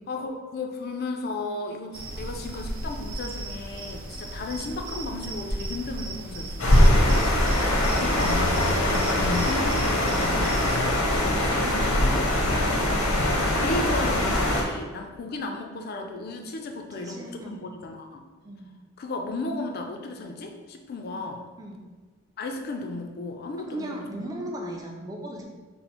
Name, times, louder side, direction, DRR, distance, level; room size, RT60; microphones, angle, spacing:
voice 1, 0.1-7.1 8.0-12.7 13.3-18.2 19.0-21.4 22.4-24.2, left 2 dB, 45° left, 3 dB, 0.4 m, -35 dB
sound 1, 1.9-10.8, right 1 dB, 75° right, 0.6 m, -35 dB
sound 2, 6.6-14.6, left 1 dB, 85° left, 0.8 m, -22 dB
voice 2, 12.3-13.1 17.0-17.6 18.4-18.7 21.6-21.8 23.7-25.4, right 1 dB, 15° right, 0 dB, 0.4 m, -37 dB
4.2 x 2.0 x 4.2 m, 1.3 s
head